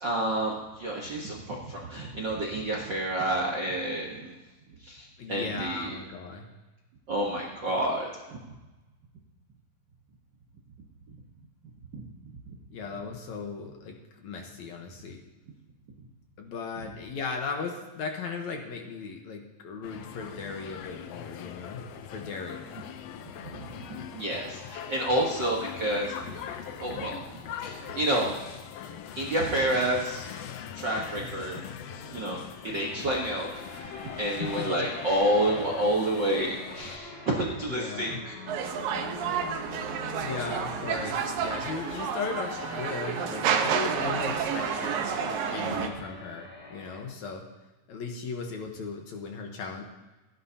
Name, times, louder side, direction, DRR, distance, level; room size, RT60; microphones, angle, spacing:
voice 1, 0.0-4.3 4.8-5.9 7.1-8.4 11.9-12.0 24.1-26.1 26.8-27.2 27.6-28.6 29.1-30.3 30.7-31.6 32.1-32.4 32.6-38.3 38.6-38.7, right 1 dB, 55° right, -2 dB, 1.2 m, -29 dB
voice 2, 5.2-6.5 12.7-15.2 16.4-21.8 22.1-22.6 34.1-34.9 37.7-38.2 40.2-45.0 45.5-47.5 47.9-49.8, left 4 dB, 65° left, 2 dB, 2.3 m, -37 dB
sound 1, 19.8-37.0, left 8 dB, 80° left, 1.5 m, -42 dB
sound 2, 33.1-47.0, left 2 dB, 40° left, 2.8 m, -43 dB
sound 3, 38.5-45.9, right 7 dB, 85° right, 2.7 m, -30 dB
27.5 x 9.4 x 2.8 m, 1.1 s
omnidirectional pair, 3.9 m